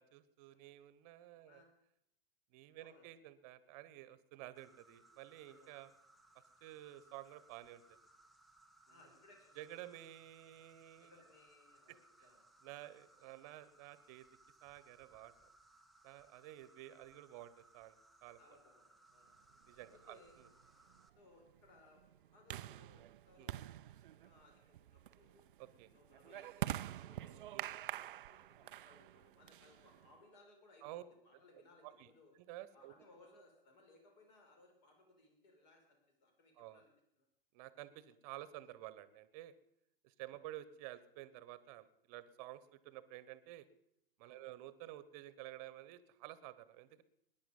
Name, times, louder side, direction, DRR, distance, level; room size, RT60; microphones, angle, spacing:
voice 1, 0.0-1.6 2.5-5.9 6.6-8.0 9.6-11.1 11.9-12.0 12.6-14.3 14.6-15.3 16.0-18.6 19.7-20.5 23.4-23.5 25.6-25.9 27.5-27.7 30.8-31.0 31.5-32.1 32.3-32.9 36.6-36.8 37.5-39.5 40.0-43.7 44.2-47.0, right 14 dB, 40° right, 16 dB, 1.1 m, -52 dB
voice 2, 1.3-1.6 2.8-3.1 5.5-5.7 8.8-9.8 11.0-12.5 13.1-13.3 16.3-16.5 18.4-19.4 19.9-20.3 21.2-25.4 25.9-27.5 27.7-32.3 32.7-36.9 37.2-37.3 44.2-44.4, left 2 dB, 50° left, 2 dB, 6.0 m, -66 dB
Insect, 4.6-21.1, right 2 dB, ahead, 0.5 m, -67 dB
sound 1, 19.8-30.2, right 13 dB, 60° right, 0.5 m, -47 dB
20.0 x 10.5 x 5.4 m, 0.76 s
hypercardioid pair, 115°, 29 cm